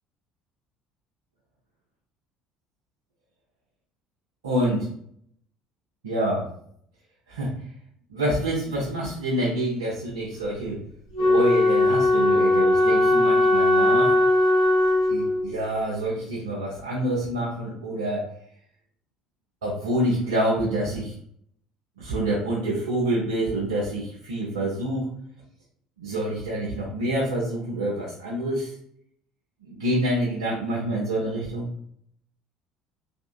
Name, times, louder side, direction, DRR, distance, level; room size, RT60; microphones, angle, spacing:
voice 1, 4.4-4.9 6.0-6.5 7.3-7.5 8.1-10.8 11.2-14.1 15.1-18.3 19.6-21.1 22.0-25.1 26.0-28.7 29.6-31.7, right 1 dB, 85° right, -5 dB, 0.7 m, -27 dB
Wind instrument woodwind instrument, 11.1-15.6, left 2 dB, 80° left, 0.9 m, -19 dB
3.5 x 2.6 x 2.4 m, 0.66 s
hypercardioid pair, 60°, 3 cm